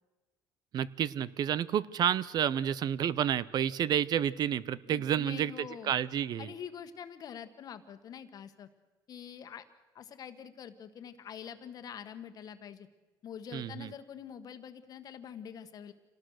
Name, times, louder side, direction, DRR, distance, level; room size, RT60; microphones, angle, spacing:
voice 1, 0.7-6.5 13.5-13.9, right 9 dB, 55° right, 18 dB, 0.6 m, -30 dB
voice 2, 4.9-5.9 6.4-8.7 9.1-9.6 9.9-12.9 13.2-15.9, left 8 dB, 45° left, 10 dB, 1.4 m, -45 dB
27.0 x 19.0 x 6.5 m, 1.2 s
cardioid pair, 120°, 9 cm